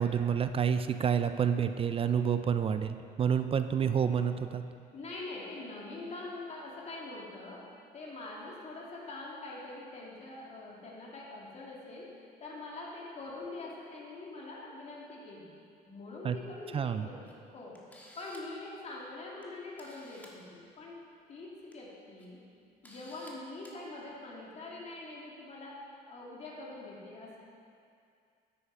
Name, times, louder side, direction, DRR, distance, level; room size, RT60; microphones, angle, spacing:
voice 1, 0.0-4.6 16.2-16.4 16.7-17.1, right 7 dB, 35° right, 10 dB, 0.4 m, -29 dB
voice 2, 4.9-12.1 12.4-15.5 15.9-17.8 18.2-21.0 21.3-22.4 22.8-27.4, left 2 dB, 40° left, -4 dB, 2.4 m, -44 dB
Camera, 17.2-17.3 17.7-18.6 19.4-19.5 19.8-20.3 21.5-21.7 22.2-22.3 22.8-23.3 23.6-23.8, equal, 10° left, 1.5 m, -54 dB
9.8 x 8.2 x 4.7 m, 2.4 s
cardioid pair, 110°, 17 cm